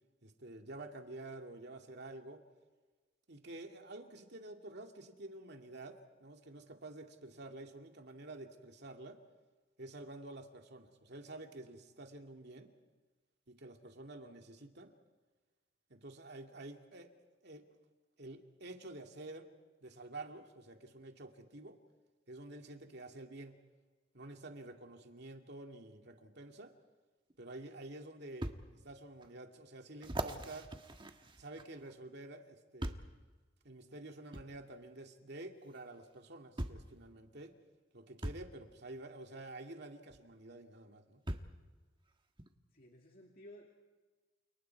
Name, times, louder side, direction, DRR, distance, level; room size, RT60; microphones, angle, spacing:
voice 1, 0.2-2.4 3.3-9.2 9.8-12.7 13.5-14.9 15.9-17.1 17.4-17.7 18.2-19.5 19.8-21.8 22.3-23.6 24.1-26.7 27.4-28.5 28.8-30.7 31.4-33.0 33.6-37.5 37.9-41.2, right 2 dB, 60° right, 4 dB, 2.5 m, -49 dB
sound 1, 27.3-27.4 28.4-28.6 29.2-29.3 30.0-31.9 32.8-33.2 34.3-34.5 35.8-35.9 36.6-36.9 38.2-38.5 40.1-40.2 41.3-41.6 42.4-42.5, right 1 dB, 25° right, 1.5 m, -41 dB
voice 2, 42.7-43.7, left 1 dB, 50° left, 0 dB, 2.5 m, -55 dB
29.5 x 29.5 x 4.7 m, 1.3 s
head